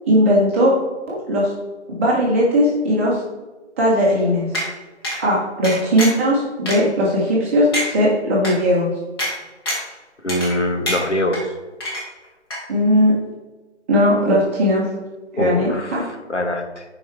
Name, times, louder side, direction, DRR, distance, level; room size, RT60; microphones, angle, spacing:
voice 1, 0.1-0.7 1.1-1.5 2.0-3.2 3.8-4.5 5.2-8.9 12.7-13.1 13.9-14.8 15.3-16.0, equal, 10° right, -6 dB, 1.0 m, -18 dB
sound 1, 4.5-4.7 5.0-5.2 5.6-6.2 6.7-6.8 7.3-7.4 7.7-7.9 8.4-8.5 9.2-9.3 9.7-9.9 10.3-10.6 10.9-11.4 11.8-12.3 12.5-12.6, equal, 20° left, 1.6 m, -25 dB
voice 2, 10.2-11.4 15.4-16.8, left 1 dB, 75° left, 5 dB, 1.3 m, -23 dB
10.5 x 4.8 x 3.2 m, 1.2 s
figure-of-eight pair, 150°, 35 cm